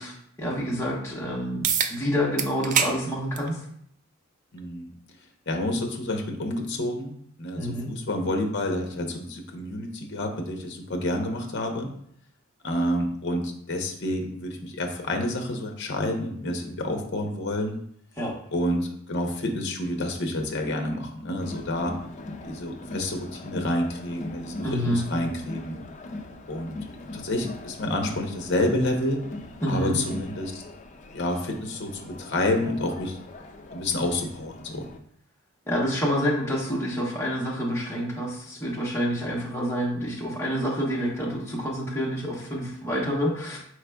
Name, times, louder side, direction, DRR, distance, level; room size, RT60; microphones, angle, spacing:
voice 1, 0.0-1.6 1.9-3.6 7.6-7.9 18.2-18.3 24.6-25.0 29.6-30.0 35.7-43.6, equal, 15° left, -5 dB, 1.0 m, -28 dB
sound 1, 1.6-1.9 2.4-2.9 3.3-3.5 4.6-4.7 9.6-9.7, right 7 dB, 35° right, 0.3 m, -24 dB
voice 2, 4.5-4.9 5.5-11.9 12.6-17.7 18.5-21.9 22.4-25.8 26.5-26.7 27.1-29.2 29.7-30.6 31.1-33.2 33.7-34.9, left 1 dB, 55° left, 3 dB, 0.8 m, -29 dB
Crowd, 21.4-35.0, left 2 dB, 35° left, 0.4 m, -41 dB
4.8 x 4.3 x 2.3 m, 0.67 s
head